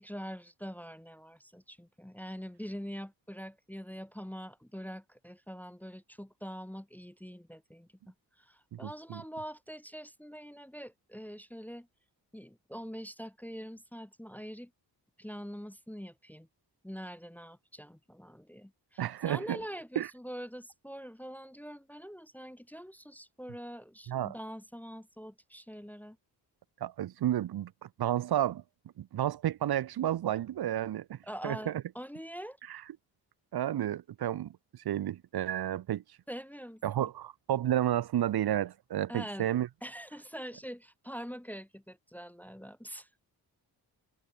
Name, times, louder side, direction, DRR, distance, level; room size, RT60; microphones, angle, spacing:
voice 1, 0.0-11.9 12.3-14.7 15.2-16.5 16.8-26.2 31.2-32.6 36.3-37.1 39.1-39.5 39.8-43.1, equal, 5° left, 0.7 m, -44 dB
voice 2, 8.7-9.2 19.0-19.6 20.0-20.1 24.1-24.3 26.8-28.6 29.0-31.2 31.4-31.7 32.7-32.8 33.5-34.5 34.8-36.0 36.8-39.7, right 11 dB, 65° right, 0.8 m, -31 dB
cardioid pair, 105°, 40 cm